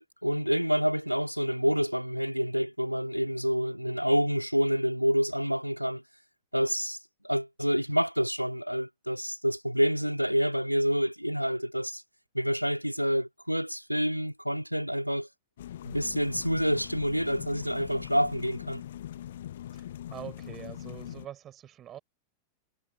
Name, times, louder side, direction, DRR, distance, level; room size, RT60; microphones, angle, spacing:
voice 1, 0.0-6.0 6.5-7.0 7.2-12.0 12.3-15.3 15.8-18.8, equal, 90° right, 2.1 m, -28 dB
sound 1, 15.6-21.3, left 11 dB, 60° left, 0.9 m, -41 dB
voice 2, 20.1-22.0, right 11 dB, 30° right, 5.6 m, -44 dB
figure-of-eight pair, 90°, 0 cm